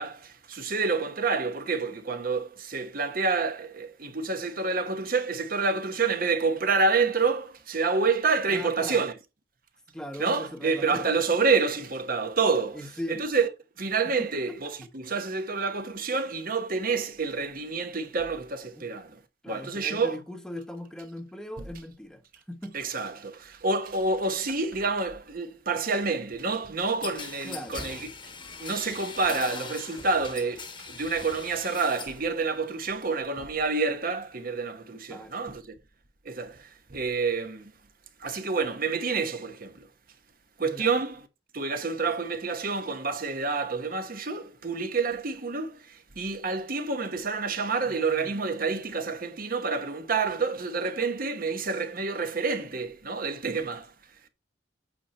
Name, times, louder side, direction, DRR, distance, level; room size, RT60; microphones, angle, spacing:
voice 1, 0.0-9.1 10.2-13.5 13.8-19.2 19.5-20.2 22.7-28.1 28.6-35.8 36.2-37.7 38.2-39.9 40.6-41.3 41.5-53.9, right 4 dB, 45° right, 1.0 m, -28 dB
voice 2, 8.5-9.1 9.9-11.2 12.7-13.2 14.2-14.7 18.8-18.9 19.4-22.2 22.5-22.8 27.4-27.9 34.9-35.5 40.6-40.9 47.9-48.5, left 1 dB, 5° left, 0.9 m, -40 dB
sound 1, 27.0-32.2 32.6-33.2, left 4 dB, 25° left, 1.2 m, -41 dB
8.5 x 5.1 x 4.1 m
head